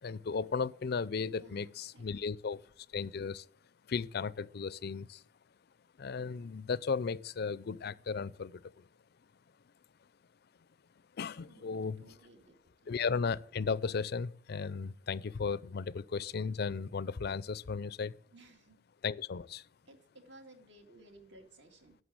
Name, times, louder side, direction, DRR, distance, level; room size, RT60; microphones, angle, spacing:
voice 1, 0.0-3.5 3.9-5.2 6.0-8.9 11.2-12.2 12.9-18.1 19.0-19.7, left 5 dB, 55° left, 0.4 m, -35 dB
voice 2, 1.4-2.0 11.5-12.6 12.8-13.0 18.3-18.8 19.9-22.0, right 2 dB, 65° right, 2.4 m, -58 dB
11.5 x 6.7 x 8.8 m
head